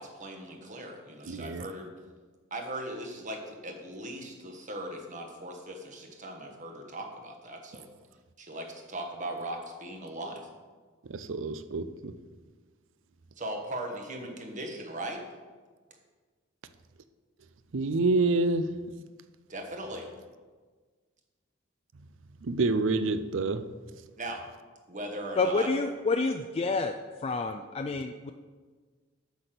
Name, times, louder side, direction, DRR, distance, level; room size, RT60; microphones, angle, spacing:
voice 1, 0.0-2.0 2.5-7.9 8.4-10.5 13.4-15.2 19.5-20.1 24.2-24.4 24.9-25.7, right 1 dB, 40° right, 3 dB, 1.4 m, -39 dB
voice 2, 1.2-1.6 11.1-12.1 17.7-18.7 22.4-23.6, right 3 dB, 65° right, 12 dB, 0.5 m, -27 dB
voice 3, 25.4-26.9 27.2-28.3, left 3 dB, 30° left, 6 dB, 0.3 m, -28 dB
8.2 x 6.0 x 6.7 m, 1.4 s
head